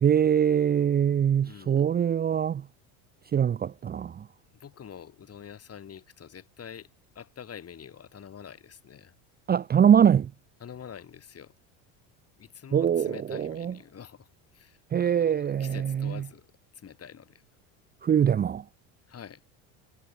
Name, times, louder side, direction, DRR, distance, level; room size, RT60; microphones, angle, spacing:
voice 1, 0.0-2.7 3.3-4.3 9.5-10.3 12.7-13.7 14.9-16.2 18.0-18.6, right 8 dB, 25° right, 0.6 m, -23 dB
voice 2, 1.4-1.9 4.5-6.9 7.1-9.1 10.6-11.5 12.4-14.3 14.5-16.5 16.7-17.4 19.1-19.4, left 8 dB, 35° left, 6.2 m, -46 dB
supercardioid pair, 95°, 41 cm